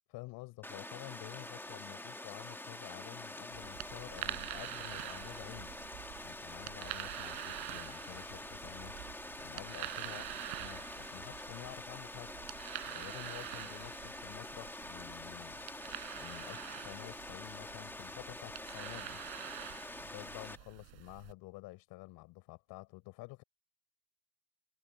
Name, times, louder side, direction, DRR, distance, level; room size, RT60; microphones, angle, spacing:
voice 1, 0.1-5.7 6.2-8.9 9.4-10.3 10.6-12.3 12.9-15.6 16.2-19.2 20.0-23.4, left 21 dB, 65° left, 5.9 m, -50 dB
Water, 0.6-20.6, left 2 dB, 5° left, 2.0 m, -46 dB
sound 1, 3.5-21.3, right 23 dB, 70° right, 4.0 m, -46 dB
cardioid pair, 150°, 39 cm